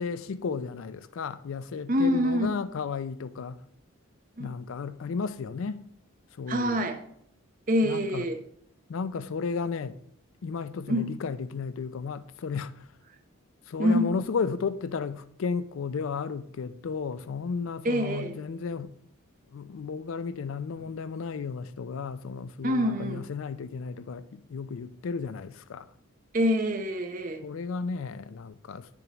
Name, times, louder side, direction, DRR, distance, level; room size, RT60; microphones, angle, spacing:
voice 1, 0.0-3.6 4.4-5.8 6.4-6.8 7.8-8.2 8.9-10.0 10.4-12.7 13.7-18.9 19.5-25.9 27.4-28.9, left 5 dB, 65° left, 0.4 m, -33 dB
voice 2, 1.9-2.5 4.4-4.5 6.5-7.1 7.7-8.4 10.9-11.1 13.8-14.2 17.8-18.4 22.6-23.2 26.3-27.4, equal, 40° right, 0.7 m, -26 dB
8.2 x 7.0 x 2.9 m
head